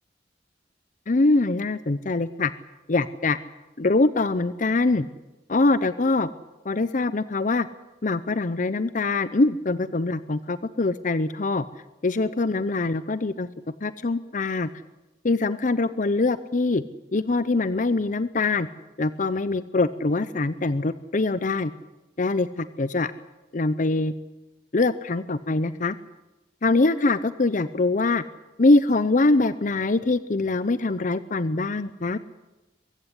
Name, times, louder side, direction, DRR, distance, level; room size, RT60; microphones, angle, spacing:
voice 1, 1.1-2.5 2.9-3.4 3.8-5.1 5.5-6.3 6.6-7.7 8.0-11.6 12.0-13.5 13.8-14.7 15.2-16.8 17.1-18.7 19.0-21.7 22.2-23.1 23.5-24.1 24.7-26.0 26.6-28.2 28.6-32.2, left 3 dB, 45° left, 14 dB, 0.7 m, -23 dB
23.0 x 15.0 x 9.8 m, 1.1 s
head